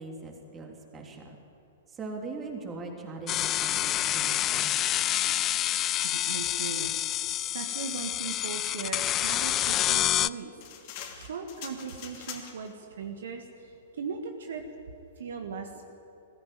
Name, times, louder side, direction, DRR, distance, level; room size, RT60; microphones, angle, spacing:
voice 1, 0.0-1.4 1.9-5.0, right 3 dB, 20° right, 2 dB, 3.4 m, -41 dB
sound 1, 3.3-10.3, left 13 dB, 25° left, 0.4 m, -28 dB
voice 2, 6.0-14.7 15.2-15.8, right 5 dB, 60° right, 5 dB, 1.6 m, -39 dB
sound 2, 9.6-12.7, left 9 dB, 45° left, 2.6 m, -44 dB
20.5 x 14.5 x 9.1 m, 2.8 s
figure-of-eight pair, 110°, 0 cm